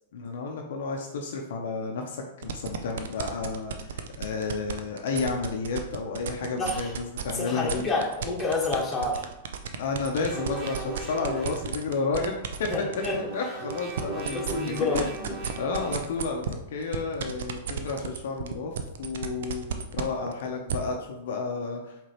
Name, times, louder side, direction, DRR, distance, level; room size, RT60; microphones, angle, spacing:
voice 1, 0.1-7.9 9.8-12.7 13.3-14.4 14.6-15.1 15.6-22.0, left 4 dB, 70° left, 1 dB, 0.6 m, -31 dB
sound 1, 2.4-7.3 7.7-13.2 13.6-20.8, right 8 dB, 70° right, 0.5 m, -33 dB
voice 2, 6.6-6.9 7.3-9.3 12.7-13.2 14.3-15.3, left 3 dB, 15° left, -3 dB, 1.4 m, -29 dB
sound 2, 10.2-11.8 12.5-16.2, right 3 dB, 30° right, 1.1 m, -39 dB
4.8 x 3.3 x 3.0 m, 0.87 s
hypercardioid pair, 110°, 0 cm